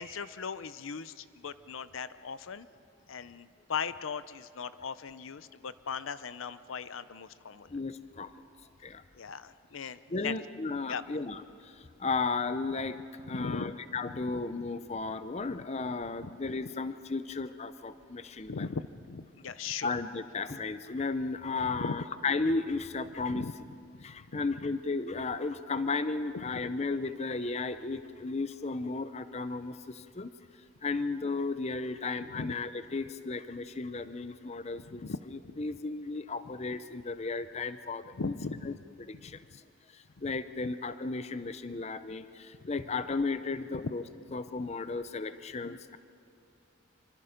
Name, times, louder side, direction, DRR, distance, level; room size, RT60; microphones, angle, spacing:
voice 1, 0.0-2.7 3.1-7.8 9.1-10.3 10.9-11.0 13.2-13.7 14.2-14.3 16.2-16.3 18.5-20.0 21.6-22.0 23.3-23.5 23.9-24.5 26.5-26.7 32.3-32.5 34.9-35.2 35.4-35.6 38.1-38.7 39.3-39.4 43.7-43.8, left 5 dB, 75° left, 14 dB, 0.6 m, -39 dB
voice 2, 7.7-8.4 8.8-9.0 10.1-13.0 13.3-18.7 19.8-23.4 24.0-30.3 30.8-35.0 35.6-38.3 38.7-38.8 39.2-39.4 39.9-44.0 44.3-46.0, left 3 dB, 30° left, 12 dB, 0.6 m, -34 dB
26.5 x 25.0 x 5.2 m, 2.4 s
head